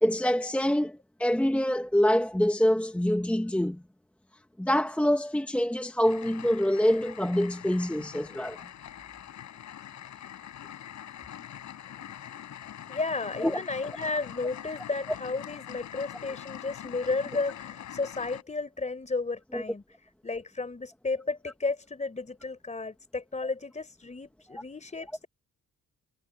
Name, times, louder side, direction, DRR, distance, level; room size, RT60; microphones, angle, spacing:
voice 1, 0.0-3.8 4.6-8.6 13.4-13.6 19.5-19.6, equal, 5° left, 1.1 m, -25 dB
sound 1, 6.0-18.4, left 10 dB, 70° left, 4.4 m, -44 dB
voice 2, 12.9-19.8 20.2-25.3, left 3 dB, 25° left, 3.8 m, -33 dB
cardioid pair, 90°, 30 cm